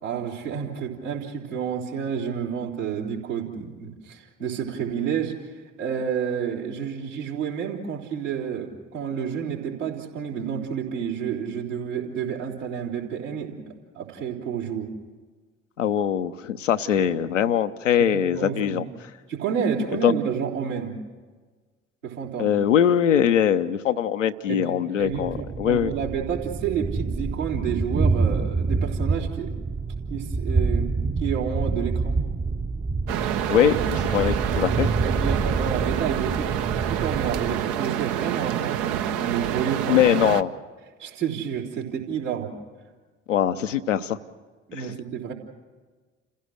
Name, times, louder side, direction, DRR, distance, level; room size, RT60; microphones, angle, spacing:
voice 1, 0.0-13.6 13.9-14.9 17.0-17.1 18.1-18.8 19.3-21.0 22.0-22.6 24.5-29.6 30.1-30.9 31.2-32.2 35.0-36.5 36.8-40.0 41.0-42.5 44.7-45.3, right 7 dB, 80° right, -4 dB, 3.7 m, -30 dB
voice 2, 15.8-18.8 20.0-20.1 22.4-25.9 33.5-34.9 39.9-40.5 43.3-44.2 44.7-44.9, left 9 dB, 80° left, 10 dB, 0.9 m, -22 dB
Thunder, 25.1-37.7, right 4 dB, 15° right, 0.8 m, -27 dB
sound 1, 33.1-40.4, right 11 dB, 60° right, 0.9 m, -27 dB
29.5 x 16.0 x 6.4 m, 1.4 s
figure-of-eight pair, 55°, 37 cm